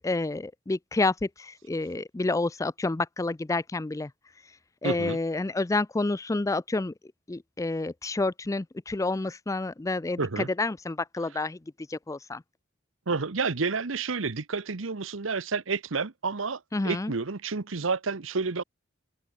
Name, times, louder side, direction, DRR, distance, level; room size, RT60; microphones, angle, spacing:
voice 1, 0.0-4.1 4.8-6.9 7.3-11.6 11.9-12.4 16.7-17.1, left 2 dB, 15° left, 0.4 m, -29 dB
voice 2, 4.8-5.2 10.2-10.5 13.1-18.6, right 4 dB, 80° right, 1.0 m, -30 dB
head